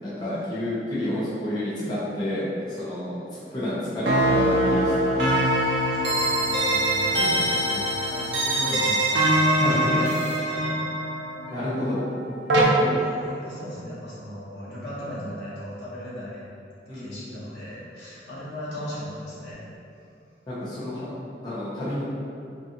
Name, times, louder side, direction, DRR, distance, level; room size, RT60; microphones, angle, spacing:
voice 1, 0.0-5.2 9.5-10.0 11.5-12.0 12.8-13.0 16.9-17.3 20.5-21.1 21.4-22.0, left 1 dB, 25° left, -11 dB, 0.6 m, -29 dB
sound 1, 4.1-12.6, right 1 dB, 80° right, 0.4 m, -23 dB
voice 2, 5.9-10.9 13.0-16.5 16.9-19.6, equal, 75° left, -9 dB, 0.9 m, -37 dB
2.5 x 2.3 x 2.7 m, 2.5 s
head